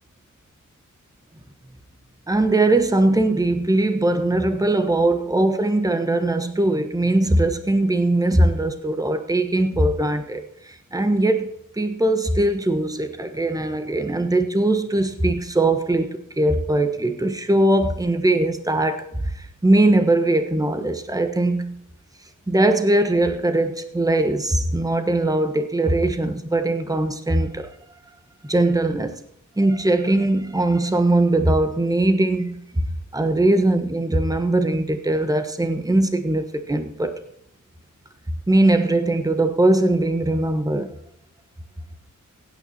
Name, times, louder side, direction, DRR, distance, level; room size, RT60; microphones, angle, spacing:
voice 1, 2.3-11.5 11.8-21.8 22.5-27.7 28.4-29.1 29.6-32.6 33.1-37.2 38.5-40.9, right 2 dB, 10° right, 1.3 m, -20 dB
16.5 x 9.4 x 4.3 m
wide cardioid pair, 115°, 31 cm